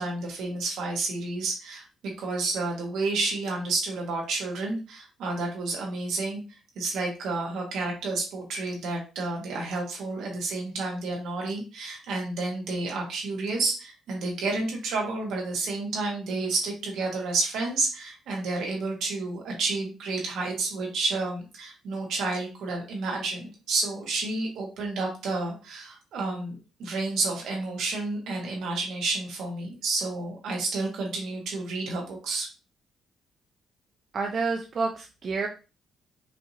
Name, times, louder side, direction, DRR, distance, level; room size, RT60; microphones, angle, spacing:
voice 1, 0.0-1.9 2.2-32.5, right 3 dB, 80° right, 0 dB, 1.5 m, -30 dB
voice 2, 34.1-35.5, right 4 dB, 50° right, 2 dB, 0.6 m, -29 dB
4.9 x 2.5 x 2.9 m, 0.32 s
cardioid pair, 90°, 0 cm